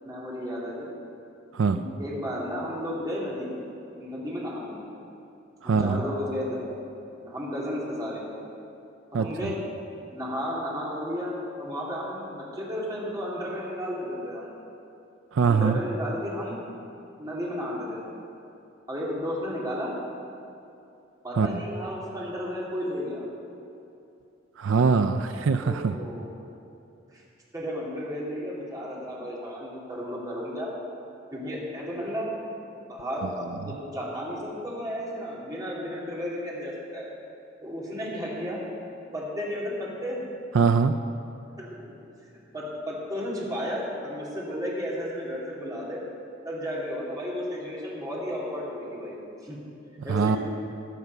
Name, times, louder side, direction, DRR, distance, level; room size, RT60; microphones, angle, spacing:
voice 1, 0.0-0.9 1.7-3.5 4.0-4.8 5.6-6.6 7.2-8.2 9.1-9.6 10.1-14.5 15.4-16.6 17.2-18.0 18.9-19.9 21.2-23.2 25.6-26.3 27.1-27.2 27.5-30.7 31.3-32.4 32.9-37.1 37.6-38.6 39.1-40.2 41.6-41.8 42.3-46.0 46.4-49.6 50.0-50.4, equal, 20° right, -6 dB, 2.6 m, -33 dB
voice 2, 5.6-6.0 9.1-9.3 15.3-15.8 21.4-21.6 24.6-25.9 40.5-41.0 50.1-50.4, right 5 dB, 85° right, 8 dB, 0.4 m, -22 dB
16.0 x 6.0 x 6.6 m, 2.7 s
head